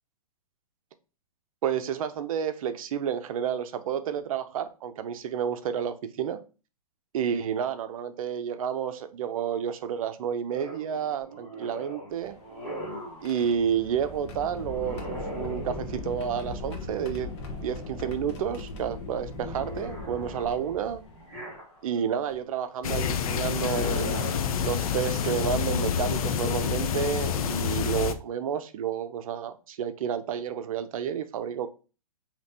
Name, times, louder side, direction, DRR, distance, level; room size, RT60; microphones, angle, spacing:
voice 1, 1.6-6.4 7.1-12.4 13.2-17.3 17.6-21.0 21.8-24.2 24.6-31.7, right 8 dB, 60° right, 0.5 m, -30 dB
sound 1, 10.5-13.3 14.6-16.2 17.1-18.2 18.6-22.1 23.3-24.3, right 1 dB, ahead, 1.8 m, -41 dB
sound 2, 12.1-21.4 22.3-22.4 23.8-24.1 24.8-25.0 26.6-26.7 27.1-27.4, left 3 dB, 45° left, 1.0 m, -39 dB
sound 3, 22.8-28.1, left 8 dB, 60° left, 0.5 m, -28 dB
5.1 x 2.9 x 2.7 m
hypercardioid pair, 150°, 20 cm